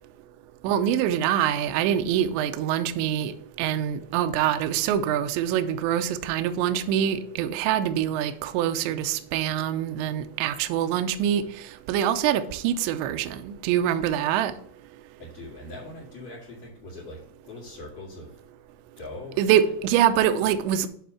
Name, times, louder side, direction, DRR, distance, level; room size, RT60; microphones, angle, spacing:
voice 1, 0.6-3.3 3.6-11.4 11.9-14.5 19.4-20.9, right 10 dB, 80° right, 2.7 m, -24 dB
voice 2, 15.2-18.4 19.0-19.7, left 2 dB, 55° left, 2.9 m, -41 dB
9.4 x 3.6 x 5.6 m
omnidirectional pair, 5.7 m